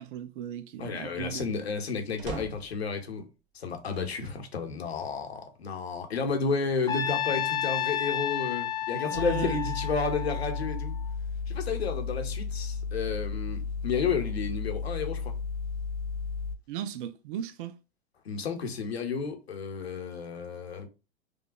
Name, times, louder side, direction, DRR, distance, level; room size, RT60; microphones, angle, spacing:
voice 1, 0.0-1.5 9.1-9.7 16.7-17.8, right 10 dB, 55° right, 0.5 m, -36 dB
voice 2, 0.8-3.2 3.5-11.0 11.5-15.3 18.2-20.9, left 5 dB, 80° left, 0.9 m, -32 dB
sound 1, 2.2-2.8 3.9-4.5 5.1-5.2 6.4-7.2, right 6 dB, 40° right, 1.4 m, -43 dB
Trumpet, 6.9-11.1, left 10 dB, 10° left, 0.7 m, -31 dB
sound 2, 9.1-16.6, left 5 dB, 30° left, 0.4 m, -34 dB
5.0 x 2.3 x 2.3 m
hypercardioid pair, 95°, 31 cm